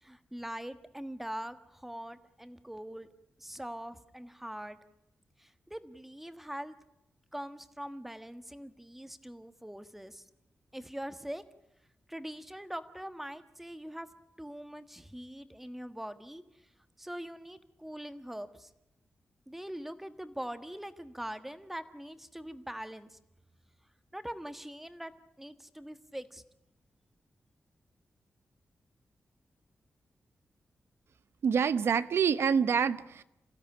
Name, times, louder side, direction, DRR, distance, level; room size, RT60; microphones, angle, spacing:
voice 1, 0.0-3.1 3.4-4.8 5.4-6.8 7.3-10.2 10.7-11.4 12.1-14.1 14.4-16.4 17.0-18.7 19.5-23.2 24.1-25.1 25.4-26.4, equal, 5° right, 1.4 m, -42 dB
voice 2, 31.4-33.2, right 6 dB, 80° right, 1.0 m, -26 dB
28.0 x 16.0 x 9.9 m
wide cardioid pair, 145°, 4 cm